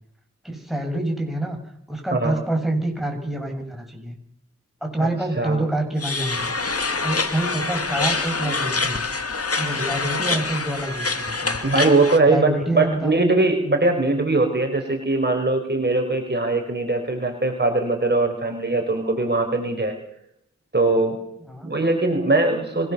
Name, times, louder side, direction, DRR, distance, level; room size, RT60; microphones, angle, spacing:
voice 1, 0.4-1.6 1.9-4.2 4.8-6.5 7.0-9.1 9.6-11.6 12.3-13.3 21.5-21.7, right 1 dB, ahead, 2 dB, 7.3 m, -27 dB
sound 1, 6.0-12.2, left 3 dB, 55° left, 2.3 m, -26 dB
voice 2, 11.6-20.0 20.7-21.2 21.6-22.9, right 2 dB, 35° right, 3 dB, 4.9 m, -21 dB
25.0 x 19.0 x 7.1 m, 0.72 s
cardioid pair, 55°, 29 cm